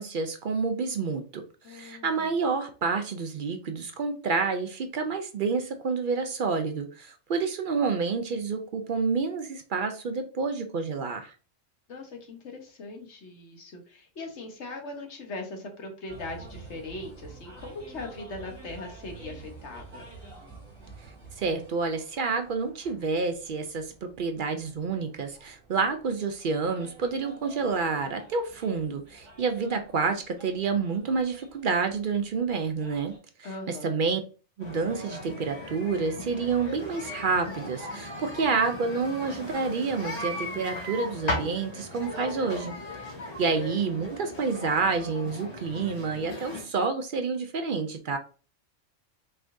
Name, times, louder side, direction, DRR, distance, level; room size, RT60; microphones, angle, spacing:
voice 1, 0.0-1.4 1.7-11.3 21.4-33.1 33.4-34.2 34.6-42.7 43.4-48.2, right 4 dB, 55° right, 6 dB, 0.6 m, -29 dB
voice 2, 1.6-2.3 11.9-20.1 33.4-34.0 43.5-43.6, left 2 dB, 65° left, 3 dB, 1.4 m, -40 dB
sound 1, 16.1-33.2, right 3 dB, 35° right, 2.7 m, -49 dB
sound 2, 34.6-46.6, left 1 dB, 35° left, 1.8 m, -37 dB
5.6 x 3.6 x 2.6 m, 0.37 s
omnidirectional pair, 1.3 m